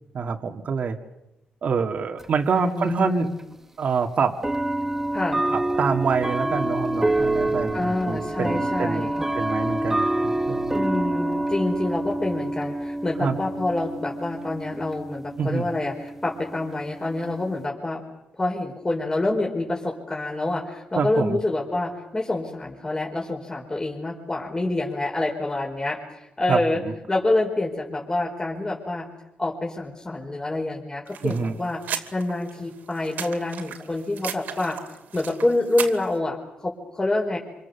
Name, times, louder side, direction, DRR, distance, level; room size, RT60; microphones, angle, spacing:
voice 1, 0.1-1.0 1.6-3.3 3.8-4.3 5.5-9.1 9.4-10.7 13.2-13.4 15.4-15.7 21.0-21.4 26.5-26.9 31.2-31.6, right 5 dB, 55° right, 4 dB, 2.0 m, -26 dB
sound 1, 2.2-2.3 3.4-3.5 4.4-17.7, right 1 dB, 10° right, 1.3 m, -27 dB
voice 2, 2.5-3.4 5.1-5.4 7.7-9.2 10.7-18.0 18.3-26.8 27.1-29.1 29.4-31.8 32.1-34.8 35.1-37.4, left 2 dB, 25° left, -2 dB, 5.0 m, -27 dB
sound 2, 31.1-36.2, right 8 dB, 80° right, 2.5 m, -36 dB
27.0 x 26.0 x 7.1 m, 0.90 s
cardioid pair, 95°, 3 cm